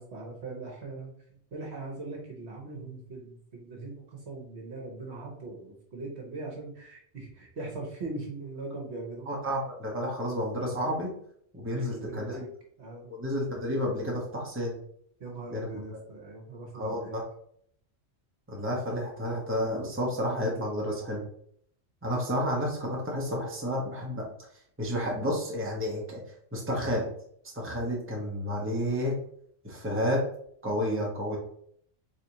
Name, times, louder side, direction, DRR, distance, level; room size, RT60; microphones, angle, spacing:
voice 1, 0.0-9.3 11.6-12.5 12.8-13.1 15.2-17.1, right 3 dB, 60° right, -1 dB, 1.3 m, -40 dB
voice 2, 9.3-11.1 11.5-12.4 13.1-14.8 15.5-15.8 16.7-17.2 18.5-21.2 22.0-24.2 24.8-26.2 26.5-27.1 27.5-29.1 29.6-30.2 30.6-31.4, equal, 10° right, -3 dB, 1.0 m, -30 dB
4.1 x 3.4 x 3.0 m, 0.64 s
omnidirectional pair, 1.3 m